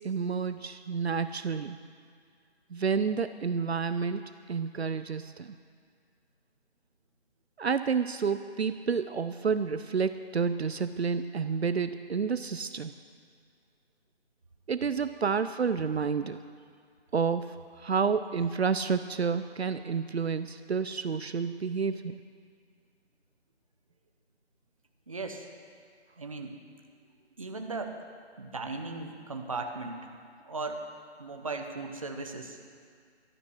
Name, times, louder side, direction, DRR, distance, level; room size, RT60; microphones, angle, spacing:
voice 1, 0.0-1.8 2.7-5.5 7.6-12.9 14.7-16.4 17.1-17.5 17.8-22.2, right 5 dB, 70° right, 11 dB, 0.6 m, -30 dB
voice 2, 25.1-25.5 26.2-26.5 27.4-27.9 28.4-30.1 30.4-30.8 31.2-32.6, right 3 dB, 30° right, 4 dB, 0.9 m, -37 dB
13.0 x 11.5 x 6.2 m, 2.1 s
figure-of-eight pair, 170°, 33 cm